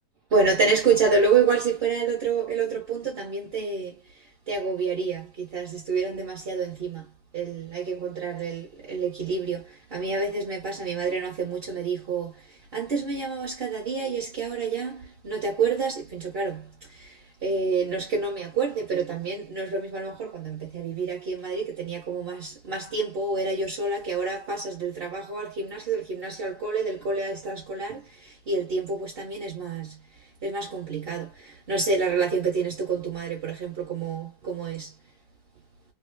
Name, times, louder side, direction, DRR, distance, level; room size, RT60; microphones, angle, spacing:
voice 1, 0.3-7.1 7.3-30.0 30.4-34.9, right 4 dB, 40° right, 1.0 m, -28 dB
3.1 x 2.3 x 3.2 m
omnidirectional pair, 1.9 m